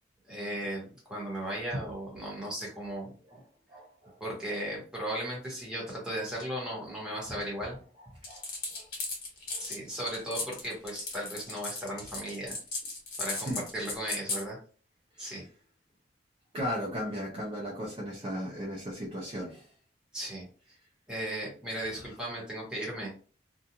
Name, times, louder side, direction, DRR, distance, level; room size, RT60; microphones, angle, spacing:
voice 1, 0.3-3.4 4.2-7.8 9.6-12.6 13.2-14.6 15.2-15.4 20.1-20.5 21.1-23.1, right 1 dB, 5° right, -4 dB, 1.1 m, -36 dB
voice 2, 3.7-4.2 8.3-8.4 8.7-8.9 9.5-9.7 13.5-13.6 15.2-15.3 16.5-19.7, equal, 30° right, -4 dB, 0.5 m, -36 dB
sound 1, 8.2-14.4, left 3 dB, 50° left, 1.1 m, -36 dB
2.5 x 2.3 x 2.8 m, 0.40 s
head